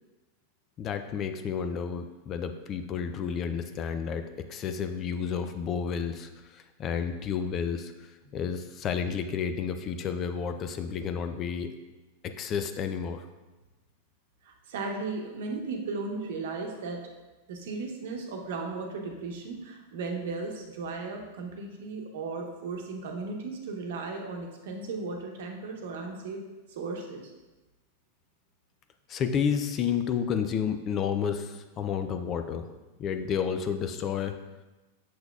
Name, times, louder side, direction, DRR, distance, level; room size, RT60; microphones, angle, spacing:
voice 1, 0.8-7.9 8.3-11.7 12.2-13.3 29.1-32.7 33.0-34.3, left 7 dB, 30° left, 8 dB, 0.3 m, -31 dB
voice 2, 14.4-17.0 17.5-26.4 26.7-27.3, right 3 dB, 70° right, 2 dB, 1.0 m, -36 dB
6.6 x 6.0 x 2.3 m, 1.1 s
supercardioid pair, 155°, 0 cm